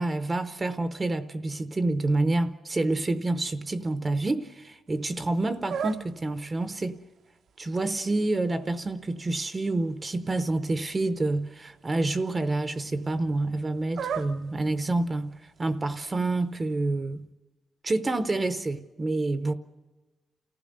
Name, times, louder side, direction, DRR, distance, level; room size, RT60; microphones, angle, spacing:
voice 1, 0.0-7.0 7.6-17.3 17.8-19.5, right 2 dB, 20° right, 0.7 m, -28 dB
sound 1, 4.9-16.8, right 7 dB, 70° right, 0.8 m, -42 dB
29.0 x 15.5 x 6.6 m
wide cardioid pair, 170°, 0 cm